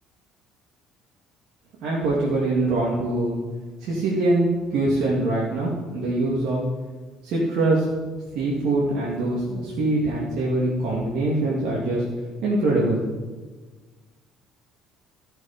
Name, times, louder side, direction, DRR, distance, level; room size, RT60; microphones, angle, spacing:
voice 1, 1.8-3.4 3.8-6.6 7.2-7.9 8.3-12.1 12.4-13.0, right 2 dB, 70° right, -5 dB, 2.7 m, -23 dB
15.5 x 6.3 x 5.2 m, 1.3 s
supercardioid pair, 85°, 0 cm